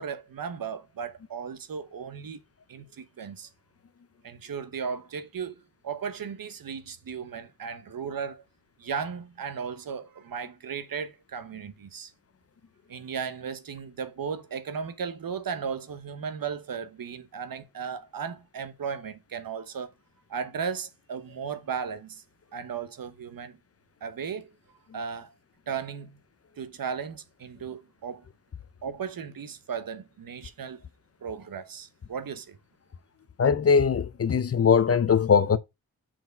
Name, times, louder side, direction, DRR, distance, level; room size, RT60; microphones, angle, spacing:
voice 1, 0.0-2.4 2.7-3.5 4.2-8.4 8.8-12.1 12.9-19.9 20.3-22.2 22.5-23.6 24.0-24.5 24.9-25.3 25.7-26.2 26.6-28.2 28.8-30.8 31.2-32.6, right 6 dB, 70° right, 1.1 m, -36 dB
voice 2, 33.4-35.6, left 6 dB, 40° left, 0.6 m, -21 dB
5.9 x 4.7 x 4.5 m
wide cardioid pair, 135°, 36 cm